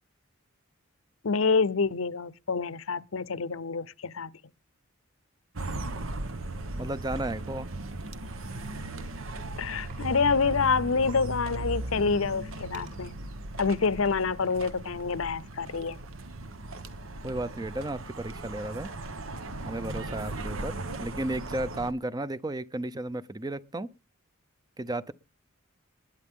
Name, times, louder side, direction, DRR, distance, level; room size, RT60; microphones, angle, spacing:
voice 1, 1.2-4.3 9.6-13.2 13.6-16.0, left 4 dB, 75° left, 0.7 m, -27 dB
sound 1, 5.6-21.9, right 2 dB, 75° right, 1.3 m, -37 dB
voice 2, 6.7-7.7 17.2-18.9 19.6-23.9 24.8-25.1, right 1 dB, 20° right, 0.6 m, -34 dB
sound 2, 9.9-10.0 10.4-10.5 10.8-10.9 11.0-11.3 11.7-16.4, right 3 dB, 40° right, 7.8 m, -55 dB
20.5 x 11.0 x 3.7 m
head